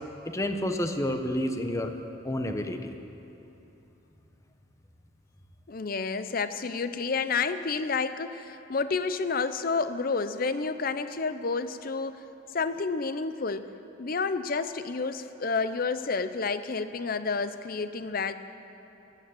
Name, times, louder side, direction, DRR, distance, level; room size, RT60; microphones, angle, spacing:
voice 1, 0.2-1.9 2.2-2.9, left 1 dB, 15° left, 6 dB, 0.8 m, -29 dB
voice 2, 5.7-12.2 12.5-13.7 14.0-18.3, left 4 dB, 45° left, 12 dB, 0.6 m, -30 dB
16.0 x 11.5 x 7.7 m, 3.0 s
head